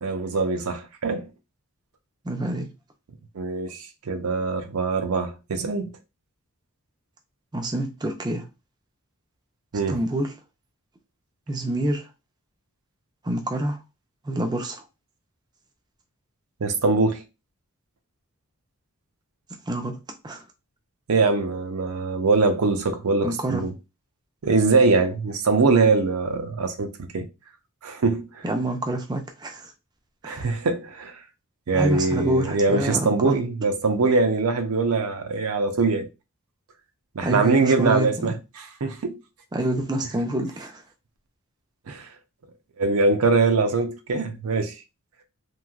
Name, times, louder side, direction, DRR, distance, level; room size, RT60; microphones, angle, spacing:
voice 1, 0.0-1.3 3.3-5.9 9.7-10.0 16.6-17.2 21.1-23.7 24.4-27.2 27.8-28.4 30.2-31.2 31.7-36.1 37.1-39.2 41.9-42.1 42.8-44.7, right 3 dB, 70° right, 0.6 m, -23 dB
voice 2, 2.2-2.7 7.5-8.5 9.9-10.3 11.5-12.1 13.2-13.8 14.2-14.8 19.7-20.0 20.2-20.4 23.2-23.6 28.4-29.7 30.2-30.5 31.7-33.4 37.2-38.3 39.5-40.8, right 1 dB, 20° right, 0.4 m, -27 dB
3.1 x 2.8 x 2.3 m
head